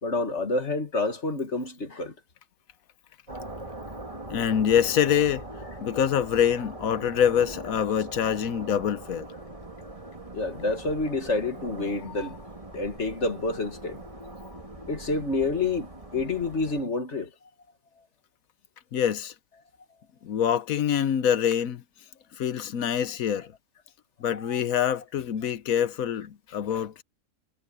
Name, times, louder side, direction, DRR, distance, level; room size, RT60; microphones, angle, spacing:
voice 1, 0.0-2.2 10.3-12.4 12.7-14.0 14.9-17.3 18.0-18.1 24.3-24.6, left 3 dB, 50° left, 2.2 m, -28 dB
sound 1, 3.3-16.8, right 2 dB, 25° right, 2.4 m, -41 dB
voice 2, 4.3-5.4 5.8-9.3 18.9-19.3 20.2-21.8 22.4-23.5 24.2-27.0, left 9 dB, 75° left, 1.2 m, -25 dB
omnidirectional pair, 1.5 m